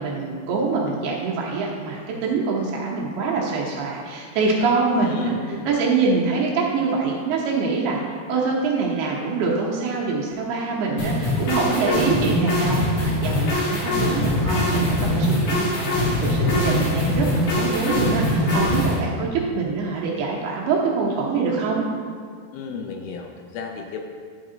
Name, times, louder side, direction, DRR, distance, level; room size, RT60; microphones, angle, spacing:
voice 1, 0.0-5.3 5.7-21.8, right 4 dB, 75° right, -3 dB, 2.8 m, -24 dB
voice 2, 5.0-5.8 14.0-14.6 22.5-24.0, left 5 dB, 80° left, 3 dB, 2.2 m, -34 dB
sound 1, 11.0-19.0, left 1 dB, 55° left, 3.1 m, -22 dB
11.5 x 4.7 x 3.8 m, 2.1 s
omnidirectional pair, 4.9 m